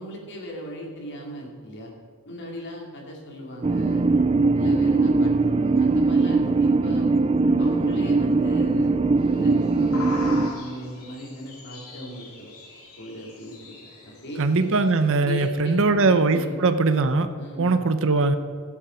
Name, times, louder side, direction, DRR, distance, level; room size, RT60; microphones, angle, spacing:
voice 1, 0.0-1.9 2.2-4.0 4.5-7.1 7.6-8.9 9.3-12.5 13.0-13.7 14.0-14.4 15.2-16.6 17.4-17.8, equal, 55° left, -1 dB, 2.7 m, -37 dB
sound 1, 3.6-10.5, right 3 dB, 25° right, 0.4 m, -21 dB
sound 2, 9.2-15.1, left 3 dB, 75° left, 2.7 m, -41 dB
voice 2, 14.4-17.3 17.6-18.4, right 3 dB, 65° right, 10 dB, 0.8 m, -21 dB
16.0 x 7.2 x 5.2 m, 2.1 s
head